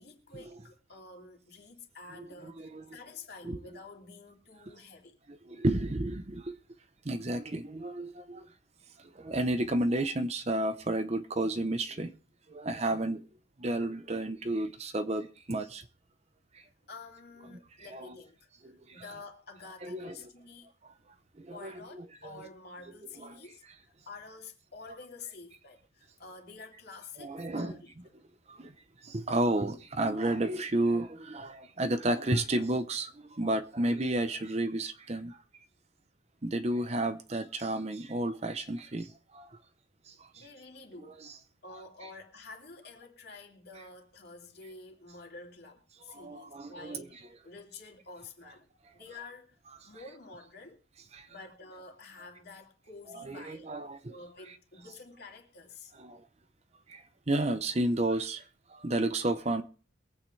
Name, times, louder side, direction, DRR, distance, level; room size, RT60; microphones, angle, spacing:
voice 1, 0.0-5.2 16.9-18.4 18.9-20.7 21.5-28.1 40.4-41.2 41.6-48.7 48.9-49.6 49.8-50.8 51.3-53.7 54.1-55.9, left 3 dB, 50° left, 2.7 m, -49 dB
voice 2, 5.3-6.5 7.0-8.5 9.0-12.1 12.5-13.2 13.6-15.8 16.5-16.6 17.5-18.2 18.6-19.0 19.8-20.2 20.8-20.9 21.4-22.0 23.2-23.4 27.2-27.8 28.5-28.7 29.0-35.4 36.4-39.5 40.1-40.2 41.0-41.4 46.1-47.0 51.1-51.3 53.1-54.2 55.9-56.2 56.9-58.4 58.7-59.6, right 1 dB, 30° right, 0.7 m, -32 dB
22.5 x 8.7 x 3.2 m
head